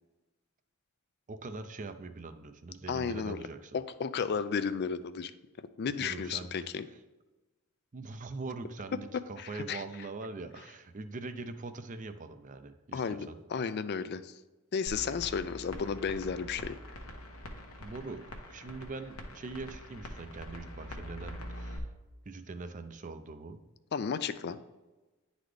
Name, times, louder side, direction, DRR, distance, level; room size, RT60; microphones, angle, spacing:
voice 1, 1.3-3.8 6.0-6.7 7.9-13.4 17.8-21.9 22.3-23.6, right 3 dB, 35° right, 10 dB, 0.5 m, -42 dB
voice 2, 2.9-3.4 3.7-5.3 5.8-6.8 9.4-9.8 12.9-14.3 14.7-16.8 23.9-24.6, left 6 dB, 50° left, 13 dB, 0.4 m, -33 dB
sound 1, 14.9-21.8, left 1 dB, 80° left, 1.0 m, -44 dB
10.5 x 4.0 x 3.3 m, 1.2 s
head